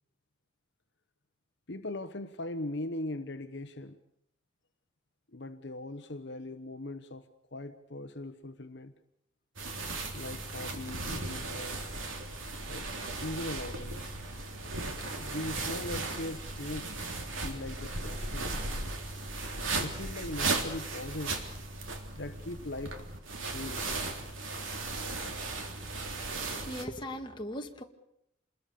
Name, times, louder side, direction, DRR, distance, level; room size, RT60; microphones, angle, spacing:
voice 1, 1.7-4.0 5.3-8.9 10.1-11.9 12.7-14.1 15.2-17.0 17.4-18.6 19.7-21.4 22.1-23.0 23.5-24.2, left 1 dB, 60° left, 1.1 m, -40 dB
sound 1, 9.6-26.9, right 3 dB, 85° right, 3.4 m, -36 dB
voice 2, 26.5-27.8, equal, 25° left, 2.0 m, -39 dB
28.0 x 21.0 x 7.0 m
head